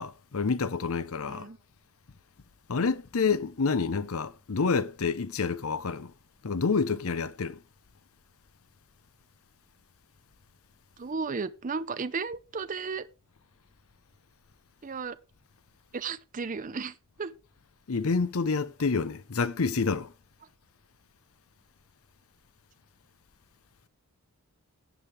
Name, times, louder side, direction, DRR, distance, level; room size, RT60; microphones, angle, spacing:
voice 1, 0.0-1.5 2.7-6.1 6.4-7.6 17.9-20.1, left 4 dB, 75° left, 0.7 m, -28 dB
voice 2, 11.0-13.1 14.8-15.2 15.9-17.3, right 4 dB, 35° right, 0.6 m, -34 dB
16.5 x 7.6 x 3.4 m
head